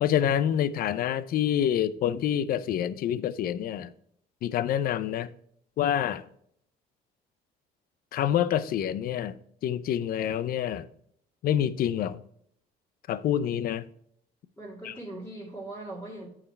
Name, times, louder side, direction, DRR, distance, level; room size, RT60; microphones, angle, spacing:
voice 1, 0.0-3.9 4.4-5.3 5.8-6.2 8.1-9.4 9.6-10.9 11.4-12.2 13.1-13.8 14.8-14.9, left 10 dB, 60° left, 0.6 m, -27 dB
voice 2, 14.6-16.3, right 2 dB, 10° left, 2.5 m, -40 dB
8.6 x 4.9 x 4.5 m
cardioid pair, 110°, 17 cm